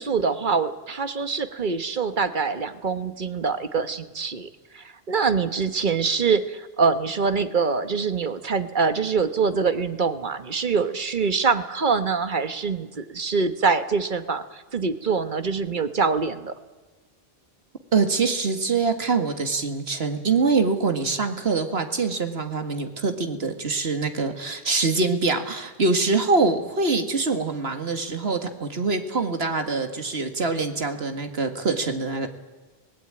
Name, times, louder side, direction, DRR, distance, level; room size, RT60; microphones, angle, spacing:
voice 1, 0.0-16.5, right 5 dB, 50° right, 11 dB, 1.4 m, -24 dB
voice 2, 17.9-32.3, right 4 dB, 80° right, 7 dB, 2.2 m, -24 dB
23.5 x 19.5 x 8.9 m, 1.3 s
omnidirectional pair, 1.0 m